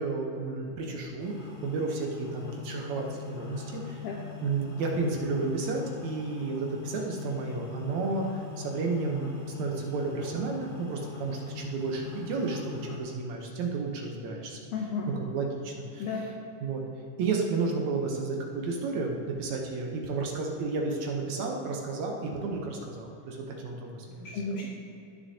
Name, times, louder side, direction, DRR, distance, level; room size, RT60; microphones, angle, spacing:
voice 1, 0.0-4.0 4.4-14.6 15.1-16.1 16.6-16.8 17.2-24.4, right 4 dB, 70° right, 0 dB, 2.0 m, -32 dB
sound 1, 1.2-13.0, left 9 dB, 55° left, 1.5 m, -42 dB
voice 2, 14.7-15.1 16.0-16.3 24.2-24.7, left 4 dB, 80° left, -1 dB, 1.4 m, -33 dB
17.0 x 6.7 x 2.8 m, 2.8 s
omnidirectional pair, 3.7 m